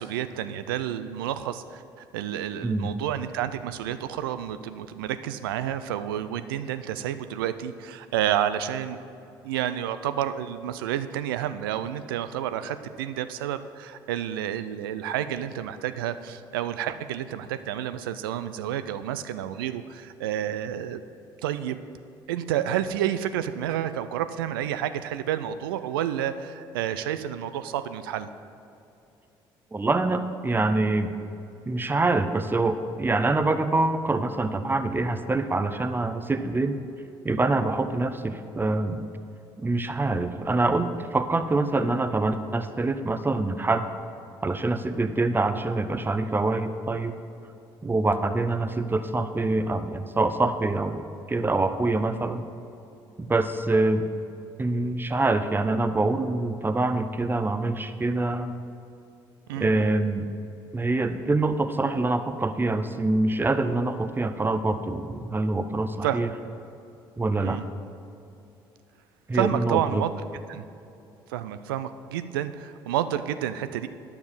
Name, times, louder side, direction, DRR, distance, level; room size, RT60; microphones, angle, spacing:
voice 1, 0.0-9.0 9.4-21.0 21.4-21.8 22.3-28.3 59.5-59.9 66.0-66.2 67.4-67.6 69.3-70.1 70.5-70.6 71.3-73.9, right 11 dB, 85° right, 12 dB, 0.4 m, -30 dB
voice 2, 2.6-2.9 29.7-31.1 31.7-36.8 37.2-39.0 39.6-43.8 44.4-47.1 47.8-52.5 53.2-54.0 54.6-58.5 59.6-60.3 60.7-66.3 67.2-67.6 69.3-70.0, right 2 dB, 20° right, 10 dB, 0.7 m, -25 dB
9.5 x 7.0 x 5.5 m, 2.7 s
hypercardioid pair, 55°, 11 cm